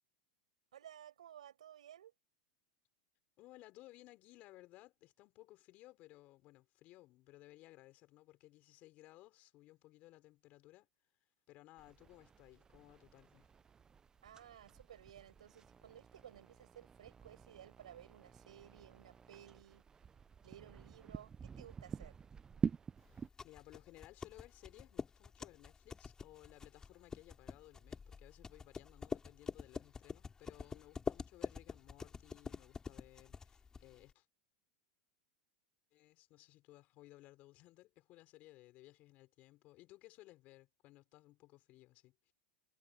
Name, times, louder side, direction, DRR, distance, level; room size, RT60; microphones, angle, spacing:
voice 1, 0.7-2.1 14.2-19.8 20.4-22.2, right 10 dB, 90° right, 5.3 m, -57 dB
voice 2, 3.4-10.9 11.5-13.5 23.1-34.3 35.9-42.3, left 17 dB, 45° left, 4.0 m, -60 dB
sound 1, 11.8-23.3, right 6 dB, 20° right, 0.4 m, -47 dB
sound 2, 23.1-34.1, left 5 dB, 20° left, 2.7 m, -46 dB
hypercardioid pair, 115°, 3 cm